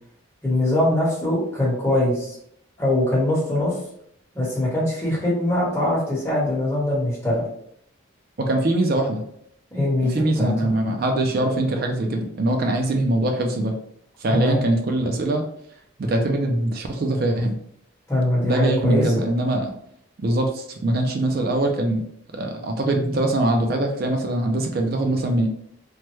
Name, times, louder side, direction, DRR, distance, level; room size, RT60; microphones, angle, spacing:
voice 1, 0.4-2.4 2.8-3.8 4.3-7.4 9.7-10.7 14.3-14.6 18.1-19.0, left 1 dB, 10° left, -7 dB, 1.1 m, -22 dB
voice 2, 8.4-9.2 10.0-13.7 14.2-15.4 16.0-17.6 18.4-19.7 20.2-22.0 22.3-25.5, right 1 dB, 45° right, 3 dB, 0.4 m, -22 dB
3.2 x 2.1 x 3.0 m, 0.69 s
head